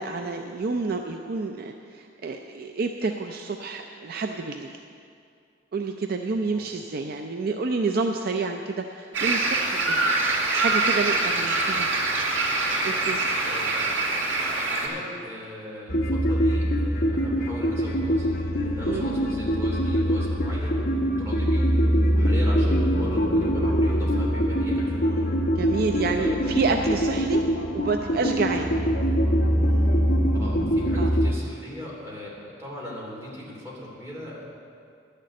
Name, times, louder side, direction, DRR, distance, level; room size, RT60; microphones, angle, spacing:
voice 1, 0.0-4.7 5.7-10.1 10.6-12.2 12.8-13.6 18.9-19.0 25.6-27.4 27.7-28.7 31.0-31.1, right 3 dB, 55° right, 4 dB, 0.5 m, -29 dB
sound 1, 9.1-14.9, right 3 dB, 70° right, 2.5 m, -24 dB
voice 2, 13.5-13.8 14.4-18.3 18.6-25.3 26.1-26.3 30.3-34.5, left 1 dB, 15° right, -5 dB, 3.0 m, -39 dB
sound 2, 15.9-31.3, equal, 50° left, 1.0 m, -23 dB
11.5 x 6.7 x 8.4 m, 2.4 s
head